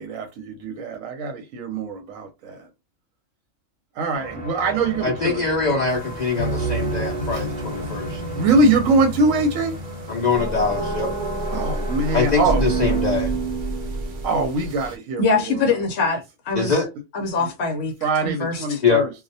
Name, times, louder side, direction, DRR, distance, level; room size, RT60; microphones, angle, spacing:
voice 1, 0.0-2.6 4.0-5.4 7.3-7.4 8.3-9.7 11.5-12.7 14.2-15.6 18.0-19.1, right 3 dB, 80° right, 0.9 m, -23 dB
sound 1, 4.1-13.0, right 2 dB, 10° left, 0.8 m, -37 dB
voice 2, 5.0-8.2 10.1-11.1 12.1-13.3 16.6-16.9 18.8-19.1, left 4 dB, 90° left, 0.3 m, -23 dB
sound 2, 5.9-14.9, right 2 dB, 55° right, 0.6 m, -28 dB
voice 3, 15.2-16.8 17.1-17.9 18.2-18.8, left 4 dB, 65° left, 0.8 m, -23 dB
2.3 x 2.1 x 2.6 m
omnidirectional pair, 1.3 m